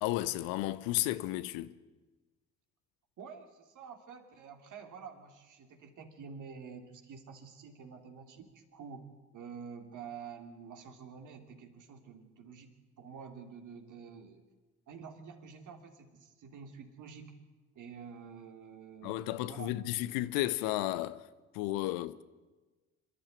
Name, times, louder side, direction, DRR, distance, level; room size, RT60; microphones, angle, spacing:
voice 1, 0.0-1.7 19.0-21.3 21.5-22.2, left 16 dB, 70° left, 0.9 m, -33 dB
voice 2, 3.2-14.4 14.9-17.3 17.7-19.7, right 6 dB, 55° right, 3.0 m, -49 dB
26.0 x 12.0 x 9.1 m
hypercardioid pair, 55°, 36 cm